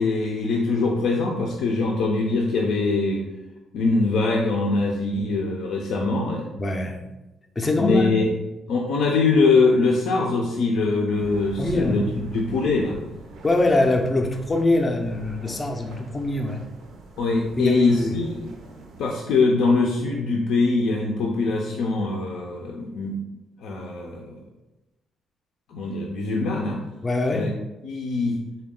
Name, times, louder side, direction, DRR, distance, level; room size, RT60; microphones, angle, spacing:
voice 1, 0.0-3.3 3.7-6.5 7.8-8.3 8.7-13.0 17.2-18.5 19.0-23.2 23.6-24.4 25.7-26.8 27.3-27.5 27.8-28.4, left 3 dB, 80° left, -1 dB, 0.4 m, -23 dB
voice 2, 6.6-7.0 7.6-8.2 11.6-12.1 13.4-16.6 17.6-18.2 27.0-27.5, left 2 dB, 25° left, 2 dB, 0.4 m, -23 dB
sound 1, 11.1-19.1, right 2 dB, 80° right, 0.6 m, -43 dB
3.9 x 2.2 x 3.6 m, 1.0 s
cardioid pair, 90°, 0 cm